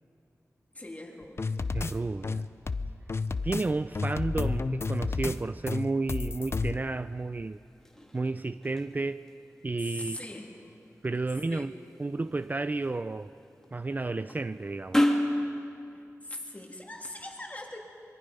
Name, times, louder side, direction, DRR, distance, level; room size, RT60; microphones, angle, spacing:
voice 1, 0.7-1.5 9.8-10.6 11.5-11.7 15.9-17.8, left 1 dB, 25° left, 0 dB, 3.0 m, -41 dB
sound 1, 1.4-1.9 2.2-3.6 3.9-5.4 5.7-6.7, left 4 dB, 50° left, 0.6 m, -31 dB
voice 2, 1.7-2.5 3.4-7.6 8.1-9.2 9.6-10.2 11.0-11.7 12.0-13.3 13.7-15.1, right 3 dB, 30° right, 12 dB, 0.4 m, -31 dB
sound 2, 6.6-15.4, left 1 dB, 10° left, 2.0 m, -35 dB
25.0 x 23.5 x 5.4 m, 2.6 s
wide cardioid pair, 85°, 6 cm